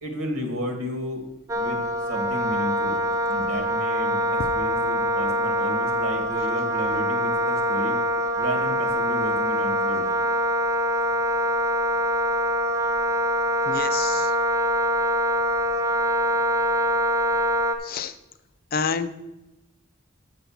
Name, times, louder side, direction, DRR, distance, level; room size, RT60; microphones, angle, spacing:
voice 1, 0.0-1.2 1.5-3.0 3.3-8.0 8.4-10.1, equal, 85° right, 4 dB, 1.9 m, -32 dB
Wind instrument woodwind instrument, 1.5-17.8, equal, 15° right, 0.6 m, -24 dB
voice 2, 13.7-14.3 17.8-18.1 18.7-19.1, left 5 dB, 45° left, 12 dB, 0.5 m, -28 dB
6.8 x 5.6 x 7.1 m, 0.96 s
head